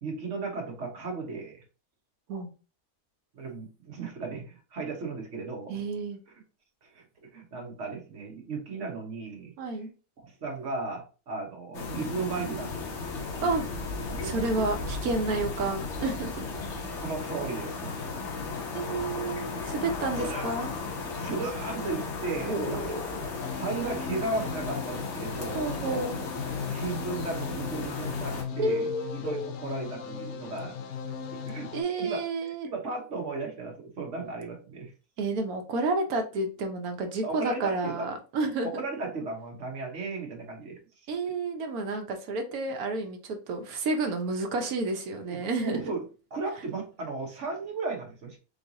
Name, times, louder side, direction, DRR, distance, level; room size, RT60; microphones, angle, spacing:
voice 1, 0.0-1.6 3.3-5.7 6.8-7.0 7.3-9.5 10.2-12.9 13.3-13.5 14.1-14.3 17.0-17.9 20.1-20.5 21.1-23.0 23.5-26.2 26.7-30.7 31.5-31.7 32.0-32.2 32.6-34.9 37.2-38.1 38.6-40.8 41.2-41.3 45.2-46.0 46.3-48.4, right 3 dB, 55° right, 0 dB, 1.5 m, -35 dB
voice 2, 5.7-6.2 9.6-9.9 13.4-13.6 14.2-16.5 18.7-20.8 22.5-23.0 23.4-23.5 25.5-26.2 28.6-29.5 31.7-32.7 35.2-38.8 41.1-45.8, right 3 dB, 80° right, 5 dB, 1.3 m, -30 dB
sound 1, 11.7-28.4, left 4 dB, 55° left, 1.1 m, -35 dB
sound 2, 23.4-31.8, left 6 dB, 85° left, 1.1 m, -38 dB
3.8 x 3.4 x 2.7 m, 0.34 s
omnidirectional pair, 1.5 m